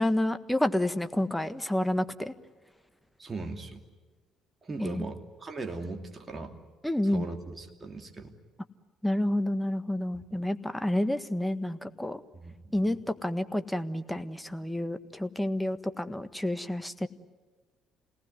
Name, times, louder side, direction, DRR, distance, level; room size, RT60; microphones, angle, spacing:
voice 1, 0.0-2.3 4.8-5.0 6.8-7.3 9.0-12.2 12.7-17.1, left 1 dB, 5° left, 10 dB, 1.5 m, -29 dB
voice 2, 3.2-3.8 4.6-6.5 7.0-8.3 10.1-10.2 12.3-13.1, right 3 dB, 30° right, 4 dB, 2.8 m, -39 dB
28.0 x 19.0 x 9.7 m, 1.3 s
hypercardioid pair, 55°, 0 cm